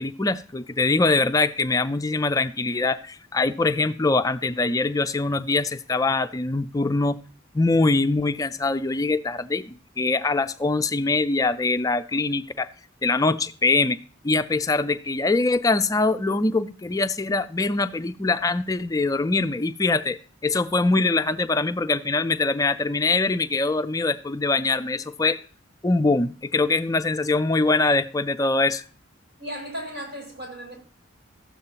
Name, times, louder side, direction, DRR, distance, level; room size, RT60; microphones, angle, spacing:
voice 1, 0.0-7.2 7.5-12.7 13.0-14.0 14.2-25.4 25.8-28.8, left 3 dB, 20° left, 0.4 m, -23 dB
voice 2, 29.4-30.8, equal, 70° right, 5.6 m, -35 dB
13.0 x 8.2 x 2.9 m
head